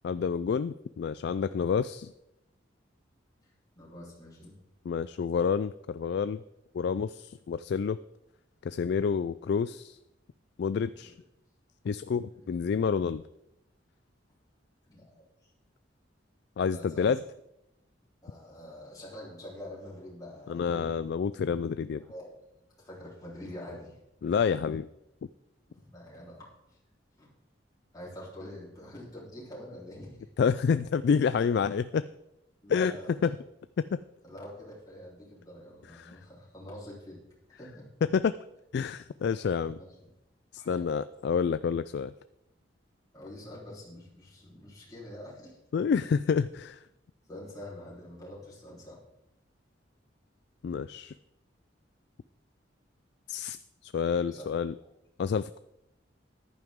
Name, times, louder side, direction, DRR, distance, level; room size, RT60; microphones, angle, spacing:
voice 1, 0.0-2.1 4.9-6.4 6.7-8.0 8.6-10.0 10.6-11.1 11.8-13.2 16.6-17.2 20.5-22.0 24.2-24.9 30.4-32.0 32.7-32.9 33.8-34.0 38.1-38.3 38.7-39.8 40.5-42.1 45.7-46.8 50.6-51.1 53.3-53.6 53.8-54.7 55.2-55.6, left 6 dB, 60° left, 14 dB, 0.3 m, -28 dB
voice 2, 3.4-4.6 11.0-11.1 12.3-12.7 14.9-15.5 16.7-17.2 18.2-21.0 21.7-22.4 22.8-24.0 25.7-26.8 27.2-27.3 27.9-30.3 32.6-33.3 34.2-37.2 37.5-37.9 39.8-40.2 40.6-41.0 43.1-45.6 47.3-49.0 54.3-54.6, left 1 dB, 20° left, -6 dB, 3.7 m, -46 dB
14.0 x 11.0 x 3.6 m, 0.86 s
head